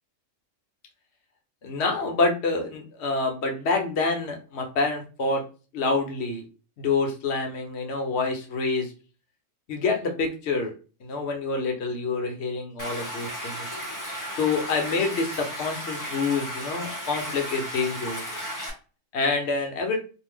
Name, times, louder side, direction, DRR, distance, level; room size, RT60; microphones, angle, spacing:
voice 1, 1.6-5.4 5.7-6.4 6.8-8.9 9.7-10.7 11.0-13.7 14.3-18.2 19.1-20.0, left 3 dB, 60° left, 3 dB, 0.8 m, -27 dB
Stream, 12.8-18.7, equal, 30° left, 0.3 m, -34 dB
2.6 x 2.0 x 3.4 m, 0.36 s
omnidirectional pair, 1.4 m